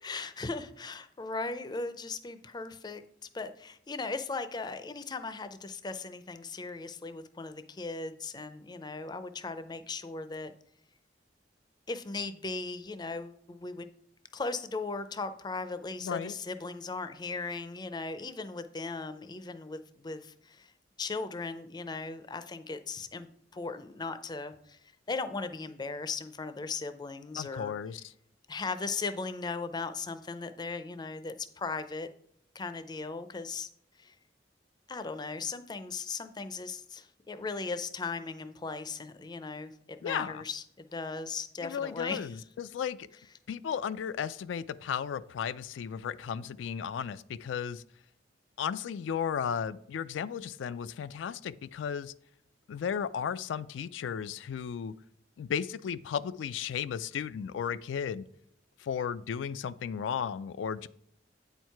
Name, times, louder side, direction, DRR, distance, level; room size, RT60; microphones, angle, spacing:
voice 1, 0.0-3.0 3.3-10.5 11.9-13.9 14.3-20.7 21.0-23.3 23.5-24.8 25.1-27.7 28.5-32.1 32.5-33.7 34.0-34.1 34.9-42.3, left 4 dB, 25° left, 11 dB, 0.4 m, -38 dB
voice 2, 16.0-16.3 27.4-28.0 40.0-40.4 41.6-43.1 43.5-47.8 48.6-52.1 52.7-54.9 55.4-58.2 58.8-60.9, left 7 dB, 85° left, 14 dB, 0.3 m, -34 dB
8.5 x 4.5 x 4.6 m, 0.69 s
head